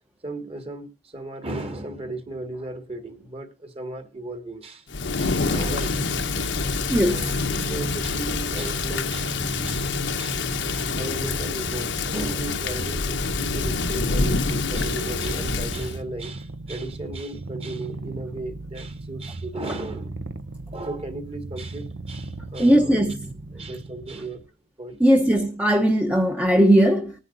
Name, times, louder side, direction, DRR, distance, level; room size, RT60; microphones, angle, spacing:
voice 1, 0.2-4.9 5.2-6.1 7.0-20.2 20.7-23.0 23.5-24.4 24.8-25.0, right 2 dB, 35° right, 1.9 m, -36 dB
Thunder / Rain, 4.9-16.0, left 4 dB, 80° left, 1.1 m, -27 dB
Purr, 5.1-24.5, right 2 dB, 85° right, 0.8 m, -36 dB
voice 2, 6.9-7.3 22.6-23.2 25.0-27.1, equal, 10° right, 0.9 m, -18 dB
20.0 x 9.9 x 2.6 m
head